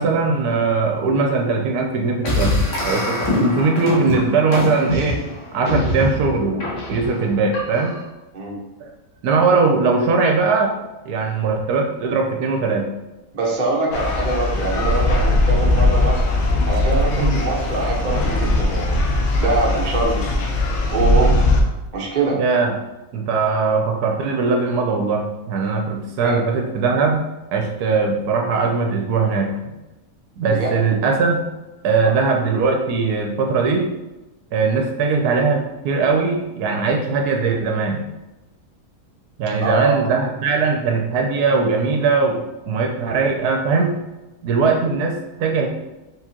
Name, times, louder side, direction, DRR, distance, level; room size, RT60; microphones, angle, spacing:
voice 1, 0.0-2.6 2.8-5.2 5.5-8.0 8.8-8.9 9.2-10.7 11.1-12.9 17.1-17.4 22.4-22.7 23.1-29.7 30.4-31.4 31.8-33.9 34.5-38.0 39.4-44.0 44.4-45.7, right 4 dB, 75° right, 2 dB, 1.1 m, -20 dB
sound 1, 2.2-8.1, left 1 dB, 85° left, 1.6 m, -24 dB
voice 2, 13.3-16.3 16.7-19.0 19.4-20.2 20.9-21.3 21.9-22.4 26.2-26.4 30.4-30.7 39.6-40.0, right 2 dB, 35° right, -2 dB, 0.8 m, -23 dB
sound 2, 13.9-21.6, left 2 dB, 60° left, 0.7 m, -19 dB
4.7 x 3.6 x 2.8 m, 1.0 s
omnidirectional pair, 1.7 m